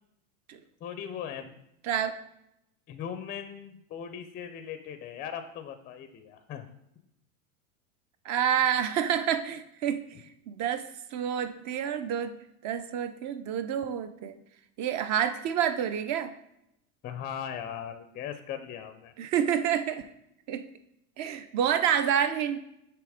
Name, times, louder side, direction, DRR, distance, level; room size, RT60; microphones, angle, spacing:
voice 1, 0.8-1.5 2.9-6.6 17.0-19.1, left 8 dB, 20° left, 9 dB, 0.4 m, -39 dB
voice 2, 1.8-2.2 8.2-10.0 10.5-12.3 12.6-14.3 14.8-16.3 19.2-20.1 20.5-20.6 21.2-22.6, right 9 dB, 40° right, 11 dB, 0.6 m, -28 dB
6.8 x 3.0 x 4.9 m, 0.80 s
hypercardioid pair, 100°, 46 cm